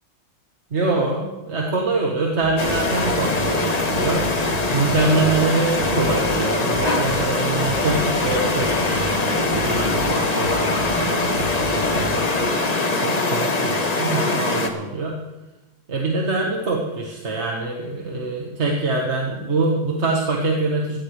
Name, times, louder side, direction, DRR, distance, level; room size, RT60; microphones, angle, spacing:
voice 1, 0.7-4.3 4.7-12.5 13.0-15.2 15.9-21.0, right 3 dB, 35° right, -1 dB, 1.6 m, -24 dB
sound 1, 2.4-12.2, right 1 dB, 60° left, 5.7 m, -31 dB
sound 2, 2.6-14.7, left 3 dB, 30° left, 0.8 m, -22 dB
16.5 x 15.0 x 3.3 m, 1.0 s
omnidirectional pair, 2.2 m